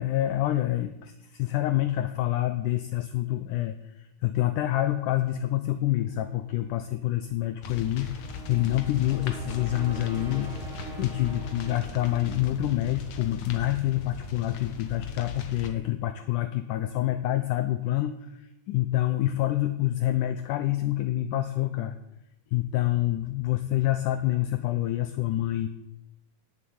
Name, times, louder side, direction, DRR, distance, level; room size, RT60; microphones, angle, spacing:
voice 1, 0.0-10.5 11.0-22.0 22.5-25.7, left 14 dB, 75° left, 9 dB, 1.9 m, -27 dB
sound 1, 5.6-13.3, right 2 dB, 55° right, 5.8 m, -44 dB
sound 2, 7.6-15.7, left 4 dB, 60° left, 2.0 m, -39 dB
18.5 x 7.5 x 8.6 m, 0.89 s
omnidirectional pair, 4.4 m